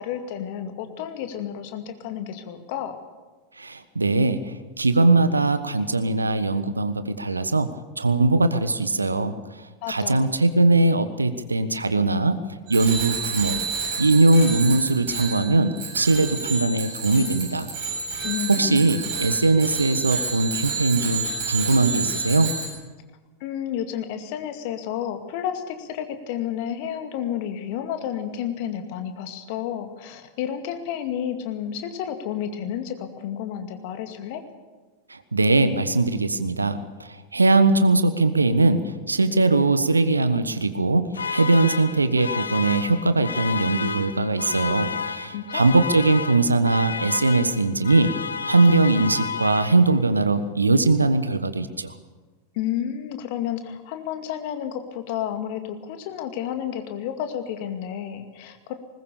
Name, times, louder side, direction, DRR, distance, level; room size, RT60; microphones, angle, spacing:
voice 1, 0.0-2.9 9.8-10.3 18.2-18.9 23.4-34.4 45.3-45.8 52.5-58.7, left 9 dB, 45° left, 7 dB, 2.2 m, -31 dB
voice 2, 3.6-9.3 9.9-12.4 12.7-13.6 14.0-17.7 18.5-22.5 35.1-48.1 48.5-51.9, right 2 dB, 80° right, 12 dB, 1.3 m, -21 dB
Bicycle bell, 12.7-22.7, right 4 dB, 50° right, 7.6 m, -30 dB
sound 1, 41.1-50.2, left 6 dB, 75° left, 0.7 m, -31 dB
20.0 x 20.0 x 7.0 m, 1.3 s
figure-of-eight pair, 90°, 0 cm